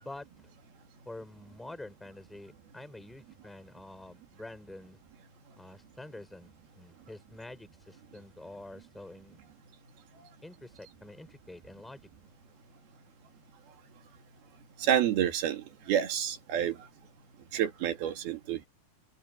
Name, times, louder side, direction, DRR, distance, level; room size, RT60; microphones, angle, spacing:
voice 1, 0.0-0.5 1.0-5.0 5.6-6.5 6.8-9.4 10.4-12.1, left 2 dB, ahead, 3.9 m, -47 dB
voice 2, 14.8-16.8 17.5-18.7, right 10 dB, 65° right, 3.9 m, -29 dB
omnidirectional pair, 4.8 m